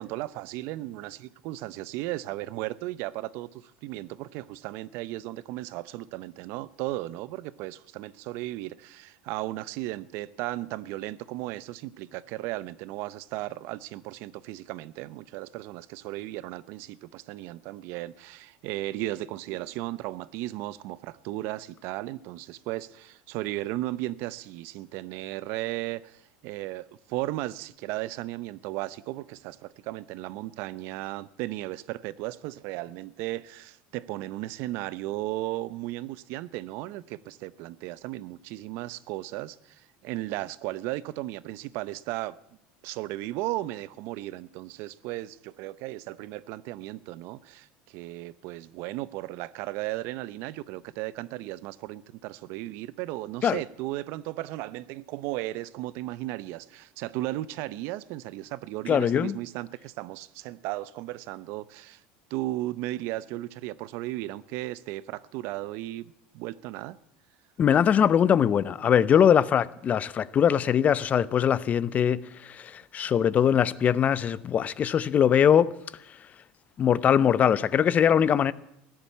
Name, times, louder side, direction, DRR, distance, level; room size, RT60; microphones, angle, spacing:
voice 1, 0.0-42.4 42.8-62.0 62.3-67.0, right 17 dB, 65° right, 0.7 m, -35 dB
voice 2, 58.9-59.4 67.6-75.7 76.1-76.2 76.8-78.5, left 8 dB, 35° left, 0.6 m, -22 dB
15.5 x 10.5 x 8.4 m
supercardioid pair, 110°, 4 cm